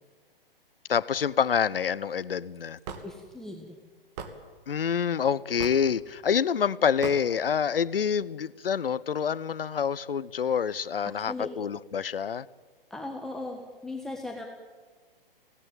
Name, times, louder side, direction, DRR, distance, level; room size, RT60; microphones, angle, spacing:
voice 1, 0.9-2.8 4.7-12.5, left 7 dB, 75° left, 0.8 m, -27 dB
Hammer / Wood, 2.9-3.1 4.2-4.3 5.6-5.9 7.0-7.2, right 6 dB, 45° right, 2.6 m, -36 dB
voice 2, 3.0-3.8 11.0-11.5 12.9-14.5, left 2 dB, ahead, 1.6 m, -38 dB
24.5 x 18.0 x 9.1 m
figure-of-eight pair, 120°, 29 cm